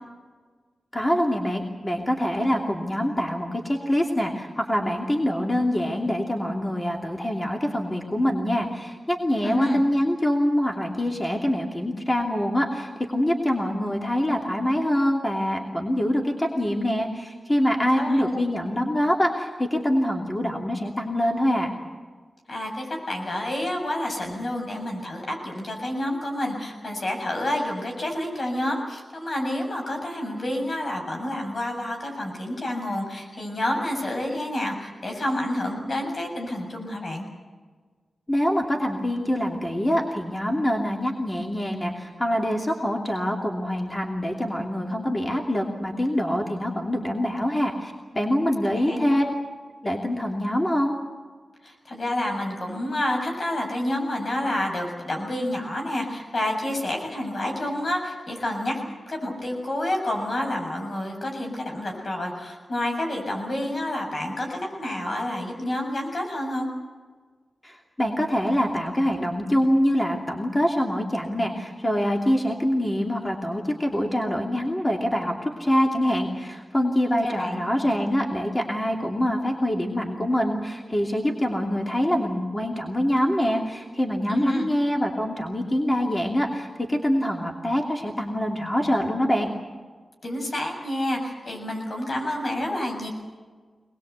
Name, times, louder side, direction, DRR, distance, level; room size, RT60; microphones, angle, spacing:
voice 1, 0.9-21.7 38.3-49.3 49.8-51.0 67.6-89.5, equal, 20° left, 1 dB, 2.8 m, -25 dB
voice 2, 9.4-9.8 17.9-18.4 22.5-37.2 48.8-49.2 51.6-58.8 59.1-66.7 77.2-77.7 84.3-84.7 90.2-93.1, left 1 dB, 55° left, 2 dB, 7.3 m, -29 dB
24.0 x 20.5 x 8.2 m, 1.4 s
wide cardioid pair, 70°, 0 cm